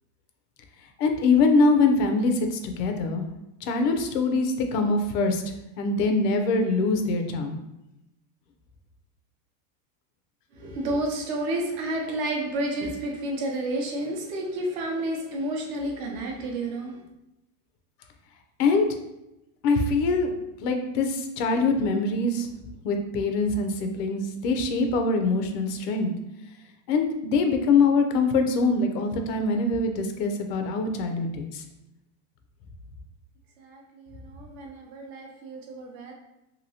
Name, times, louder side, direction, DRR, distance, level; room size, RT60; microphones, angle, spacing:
voice 1, 1.0-3.2 3.6-7.6 18.6-18.9 19.6-20.3 20.6-22.5 22.8-26.1 26.9-31.6, left 3 dB, 90° left, 5 dB, 0.7 m, -23 dB
voice 2, 10.6-17.0 33.6-36.1, right 1 dB, 45° right, 0 dB, 0.6 m, -31 dB
2.9 x 2.7 x 2.7 m, 0.90 s
supercardioid pair, 175°, 46 cm